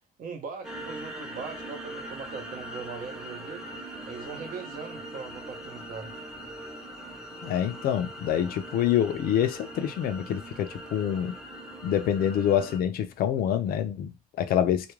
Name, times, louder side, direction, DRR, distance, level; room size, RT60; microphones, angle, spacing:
voice 1, 0.2-3.6 4.0-6.1, right 5 dB, 55° right, 0.7 m, -40 dB
sound 1, 0.6-12.8, right 1 dB, 5° right, 0.6 m, -41 dB
voice 2, 7.4-11.4 11.8-14.9, left 10 dB, 60° left, 0.4 m, -26 dB
2.3 x 2.1 x 3.0 m
cardioid pair, 110°, 17 cm